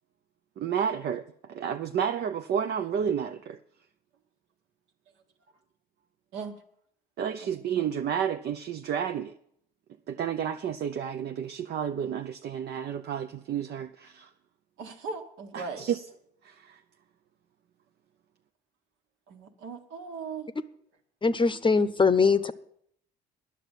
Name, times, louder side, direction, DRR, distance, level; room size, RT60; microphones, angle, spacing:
voice 1, 0.6-3.6 7.2-9.3 10.1-14.3 15.5-16.0 16.4-16.8, right 8 dB, 55° right, 7 dB, 0.6 m, -31 dB
voice 2, 14.8-15.9 19.3-20.5, right 4 dB, 75° right, 4 dB, 1.6 m, -38 dB
voice 3, 21.2-22.5, left 4 dB, 25° left, 13 dB, 0.7 m, -22 dB
9.9 x 6.8 x 9.0 m, 0.69 s
supercardioid pair, 65°, 20 cm